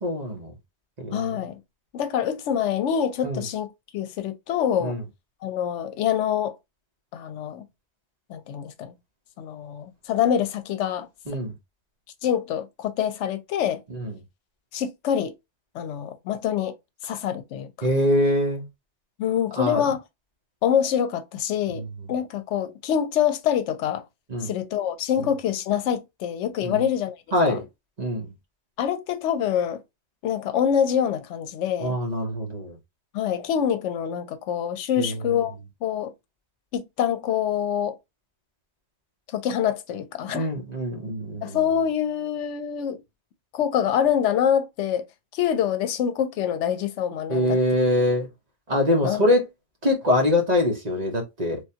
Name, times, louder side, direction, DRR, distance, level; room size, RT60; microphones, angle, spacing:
voice 1, 0.0-0.5 1.0-1.3 3.2-3.4 4.8-5.0 11.3-11.5 13.9-14.1 17.8-18.6 19.6-19.8 21.7-21.8 24.3-24.5 26.6-26.8 27.3-27.7 28.0-28.3 31.8-32.8 35.0-35.2 40.3-41.6 47.3-48.3 48.7-49.5 49.8-51.6, left 1 dB, 40° right, 1.0 m, -24 dB
voice 2, 1.1-1.6 1.9-5.0 5.4-6.6 7.1-7.6 8.3-8.9 9.4-11.1 12.2-13.8 14.7-15.3 15.7-16.8 17.0-17.9 19.2-20.0 20.6-21.8 22.1-24.0 24.4-27.2 27.5-27.6 28.8-29.8 30.2-32.0 33.1-35.5 35.8-36.1 36.7-38.0 39.3-40.5 41.4-43.0 43.5-45.1 45.3-47.6 49.0-49.2, left 9 dB, 85° left, 0.9 m, -25 dB
3.3 x 2.2 x 2.7 m
omnidirectional pair, 1.2 m